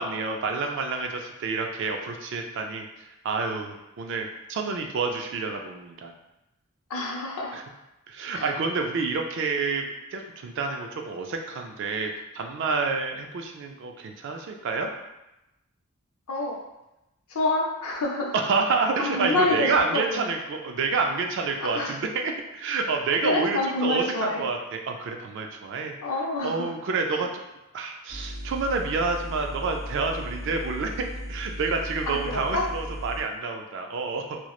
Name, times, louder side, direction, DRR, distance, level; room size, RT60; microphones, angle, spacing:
voice 1, 0.0-6.1 7.5-7.6 8.1-14.9 18.3-25.9 26.4-27.4 27.7-34.4, right 4 dB, 55° right, 3 dB, 0.3 m, -28 dB
voice 2, 6.9-7.6 8.3-8.5 16.3-16.6 17.3-18.4 19.0-20.3 21.7-22.0 23.2-24.5 26.0-26.7 27.1-27.2 32.1-32.6, left 2 dB, 75° left, -1 dB, 0.5 m, -27 dB
sound 1, 28.1-33.2, equal, 5° right, 1.0 m, -36 dB
2.9 x 2.0 x 2.3 m, 0.94 s
head